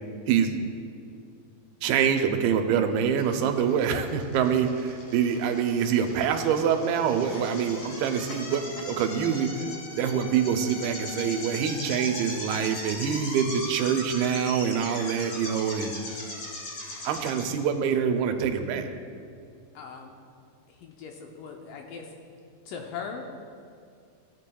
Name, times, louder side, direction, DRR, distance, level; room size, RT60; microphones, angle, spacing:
voice 1, 1.8-9.5 10.0-15.9 17.0-18.9, right 7 dB, 90° right, 6 dB, 2.6 m, -25 dB
sound 1, 3.2-17.5, left 2 dB, 60° left, 3.9 m, -39 dB
voice 2, 19.7-20.1 20.7-22.1 22.7-23.3, left 6 dB, 75° left, 2 dB, 2.2 m, -39 dB
16.5 x 9.2 x 2.3 m, 2.3 s
omnidirectional pair, 4.3 m